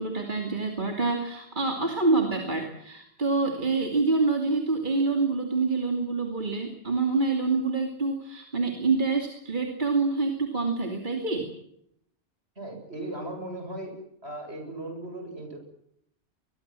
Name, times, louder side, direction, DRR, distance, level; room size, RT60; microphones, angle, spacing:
voice 1, 0.0-11.5, right 3 dB, 45° right, 3 dB, 2.9 m, -26 dB
voice 2, 12.6-14.0 14.2-15.6, right 1 dB, 65° right, 4 dB, 8.0 m, -37 dB
23.5 x 22.0 x 7.7 m, 0.75 s
omnidirectional pair, 1.2 m